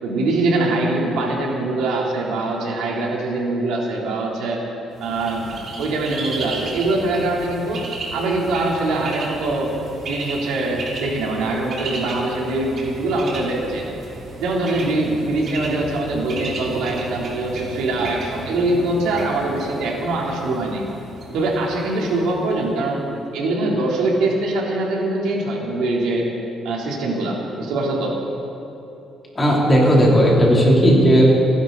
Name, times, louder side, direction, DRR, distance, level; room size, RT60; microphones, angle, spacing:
voice 1, 0.0-4.6 5.0-5.5 5.8-9.7 10.1-13.9 14.4-20.8 21.3-26.2 26.6-28.2, right 2 dB, 90° right, -3 dB, 3.2 m, -23 dB
Bird, 5.0-22.7, right 2 dB, 40° right, 3.1 m, -34 dB
voice 2, 29.3-31.5, equal, 15° left, -4 dB, 3.1 m, -14 dB
28.5 x 11.0 x 4.0 m, 2.8 s
cardioid pair, 175°, 0 cm